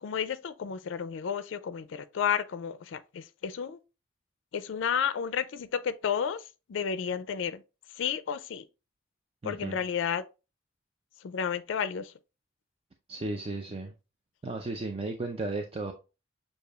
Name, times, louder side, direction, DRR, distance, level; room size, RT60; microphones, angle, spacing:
voice 1, 0.0-3.8 4.5-7.6 8.0-8.7 9.4-10.2 11.2-12.1, left 7 dB, 70° left, 0.4 m, -32 dB
voice 2, 9.4-9.8 13.1-13.9 14.4-15.9, right 2 dB, 30° right, 0.4 m, -34 dB
6.5 x 2.6 x 2.3 m
head